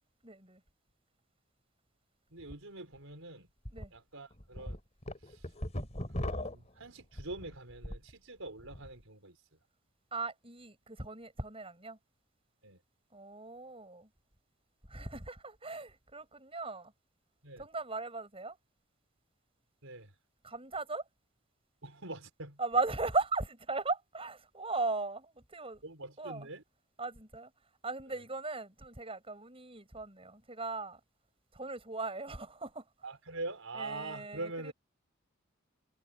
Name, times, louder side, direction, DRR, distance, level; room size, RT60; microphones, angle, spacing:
voice 1, 0.2-0.6 3.7-3.9 10.1-12.0 13.1-14.1 14.9-16.9 17.6-18.6 20.4-21.0 22.6-25.8 26.2-26.5 27.0-27.5 27.8-31.0 31.5-32.9 33.8-34.7, right 3 dB, 25° right, 7.8 m, -37 dB
voice 2, 2.3-3.5 3.9-4.8 5.2-5.5 6.2-9.4 12.6-12.8 17.4-17.7 19.8-20.1 21.8-22.6 25.8-26.6 28.1-28.2 33.0-34.7, right 2 dB, 75° right, 4.6 m, -44 dB
sound 1, 2.4-2.5 3.0-3.1 3.6-3.9 4.3-8.1 8.5-8.9, left 1 dB, 35° left, 4.4 m, -39 dB
head